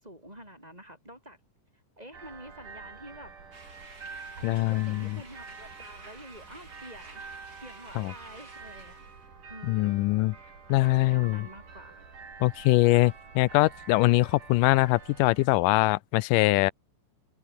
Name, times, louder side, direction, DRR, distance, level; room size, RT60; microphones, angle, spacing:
voice 1, 0.0-1.4 2.0-3.3 3.8-4.0 4.4-7.2 7.6-9.1 9.5-10.1 10.4-10.6 10.9-12.0, right 1 dB, 10° right, 8.1 m, -48 dB
sound 1, 2.1-15.5, right 5 dB, 70° right, 6.8 m, -47 dB
sound 2, 3.5-9.3, right 2 dB, 25° right, 5.8 m, -52 dB
voice 2, 4.4-5.2 8.0-8.1 9.6-10.3 10.7-11.5 12.4-16.7, left 20 dB, 80° left, 2.2 m, -23 dB
omnidirectional pair, 3.9 m